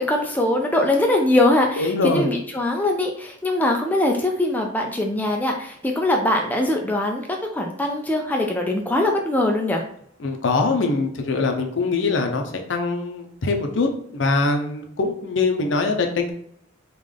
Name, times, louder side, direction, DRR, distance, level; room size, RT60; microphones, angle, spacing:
voice 1, 0.0-9.8, left 1 dB, 10° left, 1 dB, 0.3 m, -22 dB
voice 2, 1.8-2.3 10.2-16.3, left 3 dB, 65° left, 3 dB, 0.6 m, -23 dB
3.7 x 2.4 x 3.3 m, 0.68 s
head